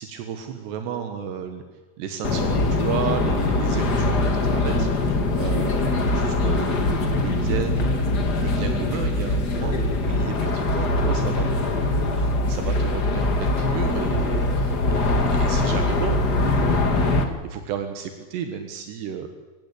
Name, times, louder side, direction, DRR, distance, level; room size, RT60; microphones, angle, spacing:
voice 1, 0.0-1.6 2.0-8.0 8.4-19.3, right 8 dB, 85° right, 7 dB, 3.6 m, -33 dB
sound 1, 2.2-17.2, left 2 dB, 40° left, 1.6 m, -22 dB
27.5 x 16.0 x 8.4 m, 1.3 s
omnidirectional pair, 4.8 m